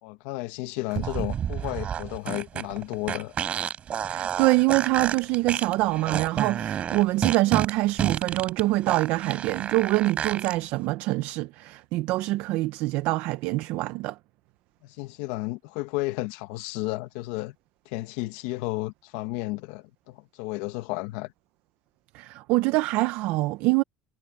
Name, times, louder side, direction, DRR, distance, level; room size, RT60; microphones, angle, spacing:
voice 1, 0.0-3.3 14.8-17.5 17.8-21.3, left 20 dB, 80° left, 1.6 m, -33 dB
sound 1, 0.9-10.5, right 9 dB, 40° right, 4.2 m, -30 dB
voice 2, 4.1-14.2 22.1-23.8, right 20 dB, 70° right, 0.7 m, -25 dB
supercardioid pair, 115°, 3 cm